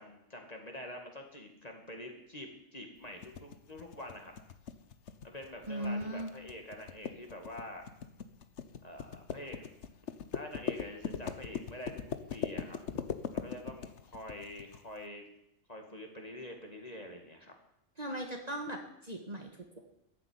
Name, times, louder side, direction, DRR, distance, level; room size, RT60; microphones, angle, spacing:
voice 1, 0.0-4.3 5.2-7.8 8.8-9.6 10.3-12.8 13.3-15.2 15.7-17.5, left 1 dB, 30° left, 2 dB, 2.3 m, -46 dB
sound 1, 3.2-14.8, left 7 dB, 60° left, 1.2 m, -40 dB
voice 2, 5.7-6.3 18.0-19.8, right 1 dB, 30° right, 2 dB, 1.7 m, -38 dB
14.5 x 7.9 x 9.6 m, 0.81 s
omnidirectional pair, 1.4 m